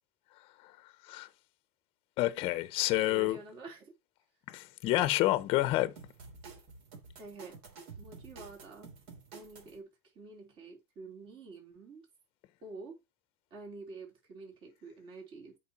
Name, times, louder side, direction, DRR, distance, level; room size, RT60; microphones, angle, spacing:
voice 1, 0.6-1.3 2.2-3.4 4.5-5.9, left 16 dB, 40° left, 0.8 m, -29 dB
voice 2, 3.1-3.9 7.2-7.6 8.0-8.9 9.3-9.9 10.2-12.1 12.6-13.0 13.5-15.6, right 3 dB, 35° right, 3.7 m, -48 dB
sound 1, 6.0-9.8, right 4 dB, 55° right, 3.4 m, -50 dB
8.4 x 5.4 x 4.2 m
supercardioid pair, 165°, 15 cm